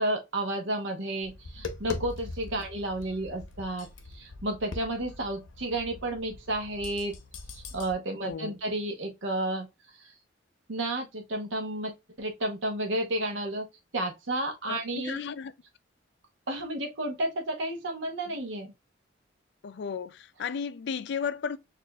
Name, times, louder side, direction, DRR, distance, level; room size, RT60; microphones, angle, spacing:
voice 1, 0.0-7.2 7.5-9.7 10.0-10.1 10.7-13.7 13.9-15.2 16.5-18.7, right 1 dB, 75° right, 0.8 m, -32 dB
Tap, 1.2-7.9, left 3 dB, 85° left, 0.7 m, -42 dB
voice 2, 8.2-8.6 14.7-15.5 19.6-21.6, left 6 dB, 60° left, 0.4 m, -34 dB
6.5 x 2.5 x 2.2 m
head